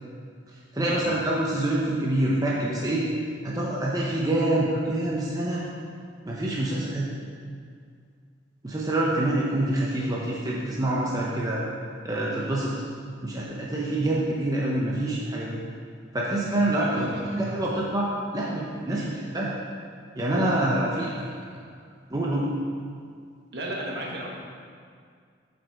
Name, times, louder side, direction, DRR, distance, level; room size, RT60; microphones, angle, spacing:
voice 1, 0.7-3.1 3.4-5.6 6.3-7.1 8.6-11.6 12.0-12.7 13.2-15.6 16.1-19.5 20.2-21.1 22.1-22.5, right 1 dB, 20° right, -5 dB, 0.7 m, -26 dB
voice 2, 13.8-14.2 16.8-17.7 18.9-19.1 21.0-21.2 21.5-21.7 23.5-24.3, right 1 dB, 55° right, -2 dB, 1.2 m, -36 dB
7.8 x 5.3 x 4.5 m, 2.1 s
head